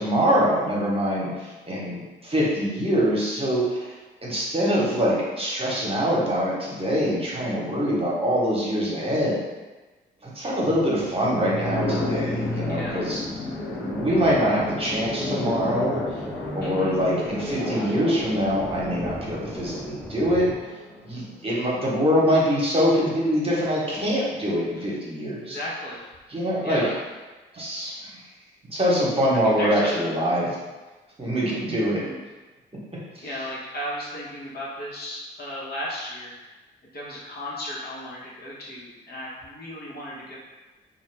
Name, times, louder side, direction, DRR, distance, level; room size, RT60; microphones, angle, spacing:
voice 1, 0.0-3.9 4.2-9.4 10.2-13.2 13.8-16.0 16.5-20.5 21.0-25.6 26.3-26.9 27.5-27.9 28.6-30.6 31.2-32.0 33.2-33.3, equal, 30° right, -6 dB, 1.1 m, -24 dB
sound 1, 10.6-20.6, left 1 dB, 5° left, 0.4 m, -36 dB
sound 2, 11.7-22.0, left 2 dB, 85° left, 0.7 m, -33 dB
voice 2, 12.7-13.0 16.6-17.0 25.4-26.1 26.6-26.9 29.3-30.1 31.9-32.2 33.2-36.3 36.9-40.4, equal, 55° left, -6 dB, 1.1 m, -35 dB
2.7 x 2.4 x 3.3 m, 1.2 s
supercardioid pair, 55°, 20 cm